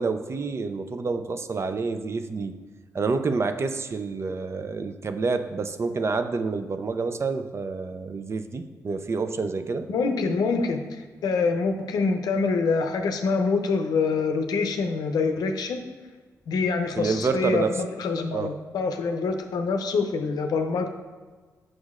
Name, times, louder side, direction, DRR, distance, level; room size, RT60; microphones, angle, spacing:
voice 1, 0.0-2.6 2.9-9.9 17.0-17.8 18.3-18.5, right 4 dB, 40° right, 9 dB, 0.4 m, -28 dB
voice 2, 9.9-15.8 16.5-20.9, left 4 dB, 75° left, 6 dB, 0.6 m, -25 dB
6.2 x 6.2 x 2.4 m, 1.4 s
cardioid pair, 60°, 7 cm